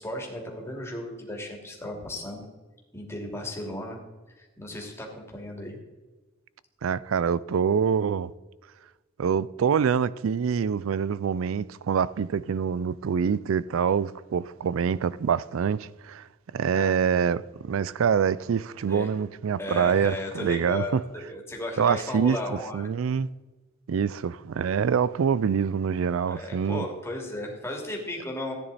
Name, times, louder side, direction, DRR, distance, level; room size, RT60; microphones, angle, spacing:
voice 1, 0.0-2.4 2.9-4.0 4.4-5.8 16.7-17.0 18.9-19.1 19.6-22.9 26.3-28.5, left 1 dB, 15° left, 2.7 m, -35 dB
voice 2, 6.8-8.3 9.2-16.3 16.5-21.0 21.8-23.3 23.9-26.9, right 7 dB, 85° right, 0.4 m, -25 dB
15.5 x 9.8 x 4.1 m
head